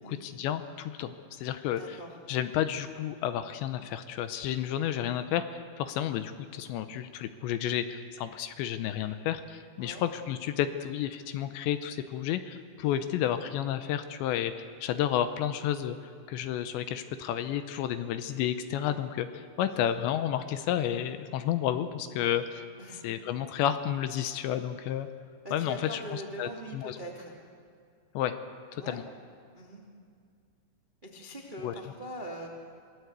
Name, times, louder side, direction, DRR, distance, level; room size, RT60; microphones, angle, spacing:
voice 1, 0.0-2.0 2.3-16.0 16.3-22.6 23.0-25.1 25.5-27.0 28.1-28.3 28.7-29.0 31.6-31.8, left 10 dB, 80° left, 10 dB, 2.8 m, -31 dB
voice 2, 1.6-2.2 9.8-10.0 12.8-13.0 19.7-19.9 22.8-23.0 25.4-27.3 28.8-29.0 29.5-29.8 31.0-32.5, right 1 dB, 70° right, -1 dB, 0.4 m, -42 dB
27.0 x 17.5 x 8.1 m, 2.3 s
omnidirectional pair, 5.6 m